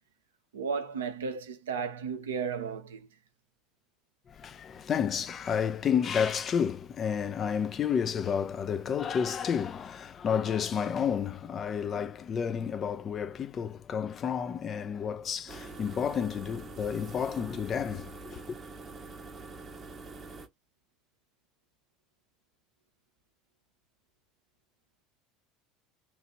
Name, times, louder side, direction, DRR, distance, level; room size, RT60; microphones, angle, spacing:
voice 1, 0.5-3.1, right 6 dB, 70° right, 0.6 m, -34 dB
voice 2, 4.3-18.4, left 7 dB, 35° left, 0.4 m, -31 dB
sound 1, 15.5-20.5, right 3 dB, 25° right, 0.8 m, -45 dB
3.0 x 2.4 x 2.9 m
figure-of-eight pair, 70°, 0 cm